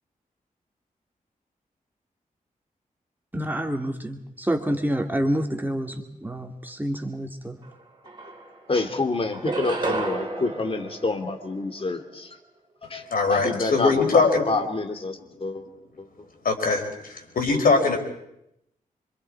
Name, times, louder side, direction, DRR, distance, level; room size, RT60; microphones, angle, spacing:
voice 1, 3.3-7.6, right 1 dB, 15° right, 3 dB, 2.6 m, -28 dB
sound 1, 7.6-7.7 8.0-8.8 9.3-11.9, right 2 dB, 30° right, 4.4 m, -32 dB
voice 2, 8.7-12.4 12.9-15.6 16.0-16.1, left 3 dB, 40° left, 5 dB, 2.6 m, -28 dB
voice 3, 13.1-14.4 16.4-18.0, left 4 dB, 85° left, 2 dB, 4.5 m, -21 dB
26.0 x 26.0 x 4.8 m, 0.79 s
wide cardioid pair, 90°, 15 cm